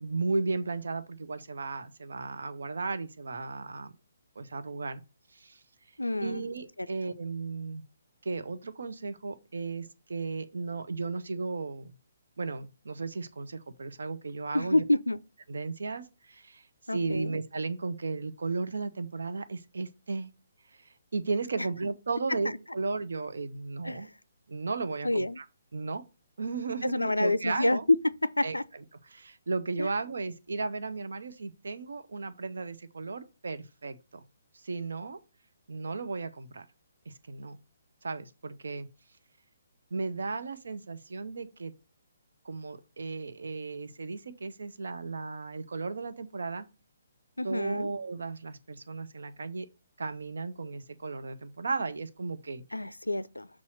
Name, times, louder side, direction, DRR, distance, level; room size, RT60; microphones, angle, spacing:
voice 1, 0.0-3.9 4.4-5.0 5.3-5.6 6.2-7.8 8.2-11.9 12.4-14.8 15.5-16.6 16.9-20.3 21.1-24.1 24.5-25.4 25.7-26.0 26.4-27.8 28.4-28.6 29.1-34.2 34.6-35.2 35.7-36.6 37.1-37.6 38.0-38.9 39.9-41.7 42.4-46.7 47.4-49.7 50.0-52.6, right 3 dB, 60° right, 0.8 m, -35 dB
voice 2, 6.0-6.4 14.5-15.2 16.9-17.4 21.6-21.7 23.8-24.1 25.0-25.4 26.8-28.6 29.8-29.9 47.4-47.9 52.7-53.5, left 2 dB, 80° left, 0.4 m, -28 dB
6.0 x 4.2 x 6.2 m
figure-of-eight pair, 135°, 0 cm